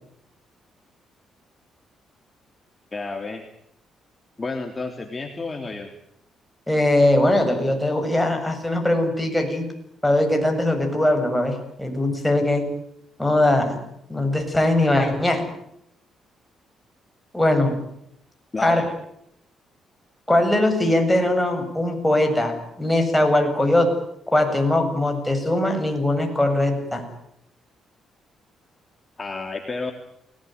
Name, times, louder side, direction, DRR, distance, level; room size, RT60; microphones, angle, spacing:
voice 1, 2.9-3.4 4.4-5.9 18.5-18.9 29.2-29.9, left 3 dB, 25° left, 4 dB, 3.0 m, -30 dB
voice 2, 6.7-9.6 10.0-12.6 13.2-13.8 14.1-15.4 17.3-17.8 18.6-18.8 20.3-23.9 24.3-27.0, left 1 dB, 5° left, 4 dB, 7.8 m, -20 dB
29.0 x 19.5 x 9.4 m, 0.76 s
cardioid pair, 90°, 0 cm